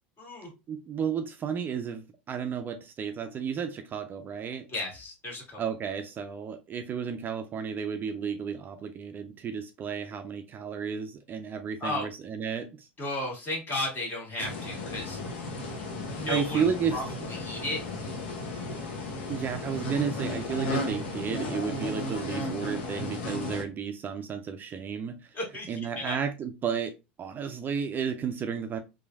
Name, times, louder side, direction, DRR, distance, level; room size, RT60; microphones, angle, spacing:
voice 1, 0.2-0.5 4.7-5.6 11.8-12.1 13.0-15.2 16.1-17.8 25.3-26.2, left 1 dB, 35° left, 1.7 m, -34 dB
voice 2, 0.7-4.7 5.6-12.9 16.3-17.3 19.3-25.3 25.7-26.9 27.2-28.8, right 7 dB, 35° right, 0.4 m, -32 dB
sound 1, 14.4-23.6, left 2 dB, 70° left, 0.8 m, -34 dB
3.0 x 2.6 x 2.4 m
hypercardioid pair, 80°, 6 cm